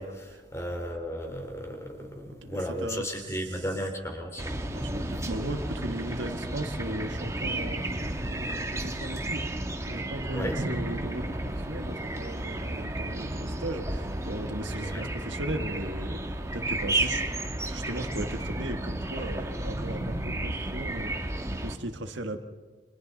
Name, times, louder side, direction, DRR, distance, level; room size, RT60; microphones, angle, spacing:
voice 1, 0.0-4.6 10.3-10.5 14.8-15.1, equal, 15° left, 3 dB, 2.8 m, -35 dB
voice 2, 2.4-3.7 4.7-17.2 17.6-22.4, right 1 dB, 70° right, 6 dB, 1.6 m, -37 dB
sound 1, 4.4-21.8, right 1 dB, 15° right, 1.3 m, -32 dB
30.0 x 25.0 x 4.0 m, 1.4 s
head